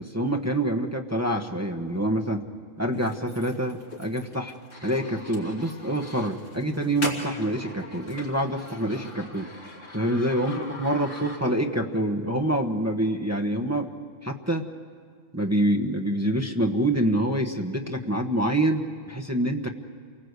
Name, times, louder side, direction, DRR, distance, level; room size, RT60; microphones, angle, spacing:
voice 1, 0.0-2.5 2.8-4.5 4.8-9.5 9.9-13.9 14.2-14.7 15.3-19.7, right 1 dB, 15° right, 1 dB, 1.1 m, -26 dB
sound 1, 2.9-11.8, left 1 dB, 65° left, 3.5 m, -40 dB
28.5 x 19.5 x 8.2 m, 2.1 s
omnidirectional pair, 1.3 m